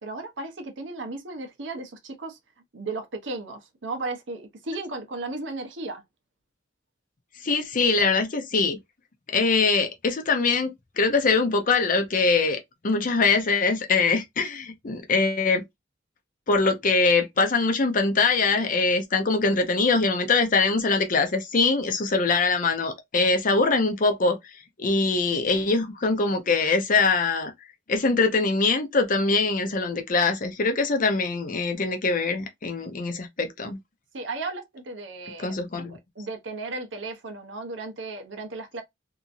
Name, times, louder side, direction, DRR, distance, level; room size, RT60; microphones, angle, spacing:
voice 1, 0.0-2.4 2.7-6.0 34.1-35.6 36.2-38.8, right 3 dB, 80° right, 0.8 m, -35 dB
voice 2, 7.4-8.8 9.3-12.6 12.8-15.6 16.5-24.5 24.8-27.5 27.9-33.8 35.4-36.0, left 4 dB, 45° left, 0.7 m, -23 dB
2.8 x 2.6 x 2.5 m
head